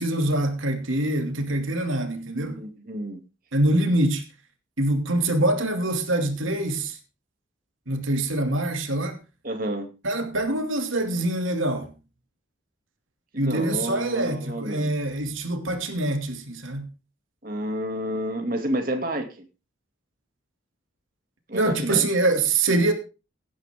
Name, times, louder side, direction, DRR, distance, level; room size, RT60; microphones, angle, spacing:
voice 1, 0.0-2.6 3.5-4.2 4.8-7.0 7.9-9.2 10.0-11.9 13.4-16.9 21.5-22.9, right 2 dB, 80° right, 2.8 m, -24 dB
voice 2, 2.6-3.2 9.4-9.9 13.3-14.9 17.4-19.4 21.5-22.0, right 1 dB, 45° right, 2.6 m, -30 dB
17.0 x 10.5 x 3.7 m
head